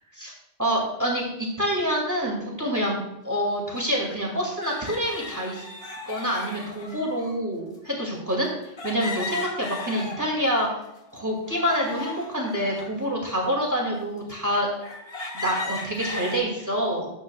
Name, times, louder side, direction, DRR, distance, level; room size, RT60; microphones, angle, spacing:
voice 1, 0.6-3.0 3.2-5.6 6.1-8.5 8.8-10.7 11.1-14.7 15.3-17.1, equal, 15° right, -2 dB, 2.1 m, -26 dB
sound 1, 3.5-3.6 4.6-7.4 8.8-10.5 11.0-12.9 13.6-13.7 14.3-14.4 14.8-16.4, left 3 dB, 65° left, 1.4 m, -36 dB
10.5 x 7.5 x 2.2 m, 0.89 s
omnidirectional pair, 1.1 m